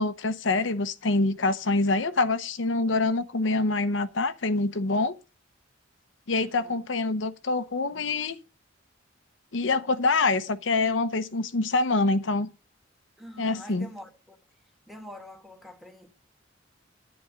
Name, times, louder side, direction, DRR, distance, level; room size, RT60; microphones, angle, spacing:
voice 1, 0.0-5.1 6.3-8.4 9.5-12.5 13.4-13.9, left 3 dB, 70° left, 0.8 m, -25 dB
voice 2, 6.3-6.9 7.9-8.1 13.2-14.4 14.9-16.1, equal, ahead, 1.9 m, -46 dB
10.0 x 10.0 x 5.0 m
head